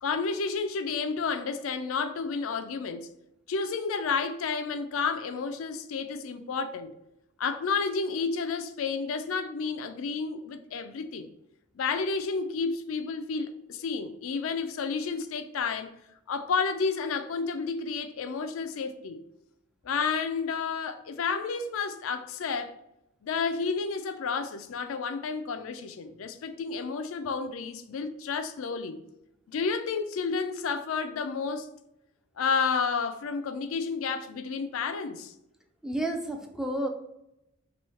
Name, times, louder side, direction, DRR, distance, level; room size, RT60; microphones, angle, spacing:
voice 1, 0.0-3.1 3.5-6.9 7.4-11.3 11.8-15.9 16.3-19.2 19.8-22.7 23.2-29.0 29.5-31.7 32.4-35.3, left 5 dB, 85° left, 0.4 m, -31 dB
voice 2, 35.8-36.9, right 1 dB, 5° right, 0.3 m, -31 dB
3.0 x 2.7 x 4.3 m
head